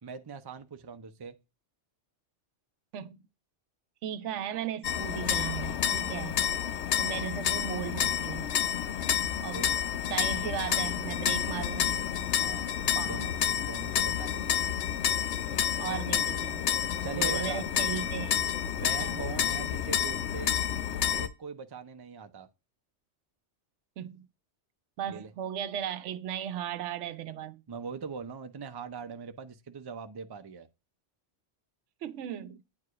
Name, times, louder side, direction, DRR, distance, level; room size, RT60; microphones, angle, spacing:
voice 1, 0.0-1.4 9.4-9.7 12.4-14.6 17.0-17.6 18.7-20.5 21.0-22.5 25.1-25.3 27.7-30.7, right 6 dB, 30° right, 0.5 m, -41 dB
voice 2, 4.0-6.4 7.0-8.5 9.4-9.6 10.1-12.1 12.9-13.3 15.8-16.7 17.1-18.4 19.0-19.2 24.0-24.3 25.0-27.6 32.0-32.6, right 10 dB, 80° right, 0.9 m, -36 dB
sound 1, 4.8-21.3, left 8 dB, 70° left, 0.9 m, -29 dB
9.4 x 4.7 x 2.4 m
omnidirectional pair, 1.2 m